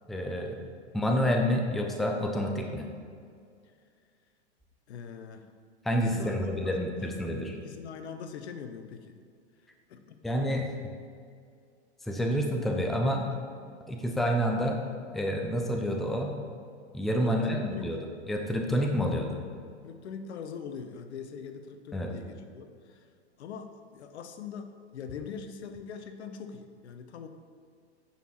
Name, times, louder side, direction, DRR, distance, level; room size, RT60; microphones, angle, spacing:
voice 1, 0.1-0.6 0.9-2.9 5.8-7.6 10.2-10.7 12.1-13.3 13.9-14.8 15.1-16.3 16.9-18.0 18.3-19.4 21.9-22.1, equal, ahead, 2 dB, 0.6 m, -28 dB
voice 2, 4.9-5.5 5.9-7.1 7.5-9.2 9.9-10.2 13.3-13.4 17.2-17.9 18.6-19.0 19.8-23.1 23.4-27.3, left 6 dB, 70° left, 8 dB, 0.9 m, -42 dB
9.0 x 5.7 x 4.4 m, 2.3 s
hypercardioid pair, 110°, 35 cm